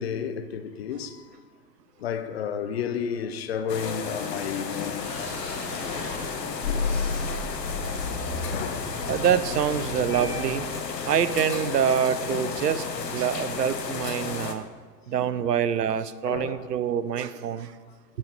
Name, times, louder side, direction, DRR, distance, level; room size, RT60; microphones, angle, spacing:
voice 1, 0.0-1.4 2.0-7.3 8.5-9.0 9.5-9.6 10.0-10.1 14.3-14.5 15.1-15.4 16.3-16.7, left 7 dB, 40° left, 0.5 m, -33 dB
sound 1, 3.7-14.5, left 5 dB, 80° left, 0.9 m, -33 dB
sound 2, 5.0-10.7, left 3 dB, 60° left, 2.2 m, -33 dB
voice 2, 9.1-10.7 11.0-14.6 15.1-17.7, right 8 dB, 75° right, 0.5 m, -26 dB
10.0 x 4.2 x 5.0 m
figure-of-eight pair, 100°, 49 cm